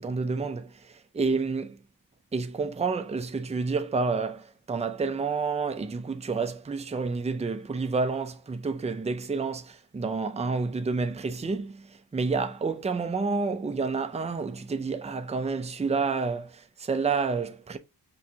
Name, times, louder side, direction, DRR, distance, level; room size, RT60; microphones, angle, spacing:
voice 1, 0.0-1.8 2.3-17.8, right 4 dB, 15° right, 0.4 m, -29 dB
5.8 x 3.0 x 2.7 m
wide cardioid pair, 115°, 42 cm